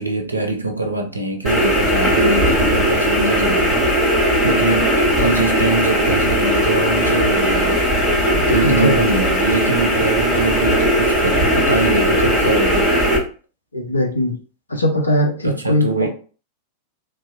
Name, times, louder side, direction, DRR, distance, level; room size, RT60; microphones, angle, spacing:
voice 1, 0.0-4.1 4.4-8.0 8.3-13.0 15.4-16.1, right 2 dB, 80° right, 0.4 m, -23 dB
sound 1, 1.4-13.2, equal, 10° right, 1.2 m, -18 dB
voice 2, 8.6-8.9 13.7-14.3 14.7-16.1, equal, 80° left, 0.5 m, -19 dB
2.5 x 2.0 x 2.5 m
figure-of-eight pair, 90°, 0 cm